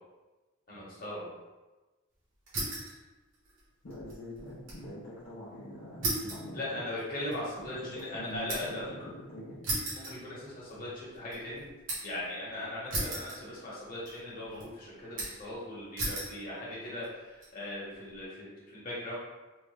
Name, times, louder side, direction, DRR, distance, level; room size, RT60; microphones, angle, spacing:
voice 1, 0.7-1.2 6.5-8.9 9.9-11.6 12.0-19.2, left 1 dB, 45° left, -7 dB, 1.1 m, -39 dB
sound 1, 2.5-3.0 3.3-4.9 5.2-5.3 6.0-8.9 9.6-10.8 11.1-12.2 12.9-13.8 14.0-14.6 15.2-15.5 16.0-16.4 17.0-17.5, right 2 dB, 70° right, 1.2 m, -36 dB
voice 2, 3.8-6.8 7.8-9.6, left 1 dB, 60° left, -9 dB, 0.7 m, -44 dB
3.5 x 2.1 x 3.3 m, 1.2 s
head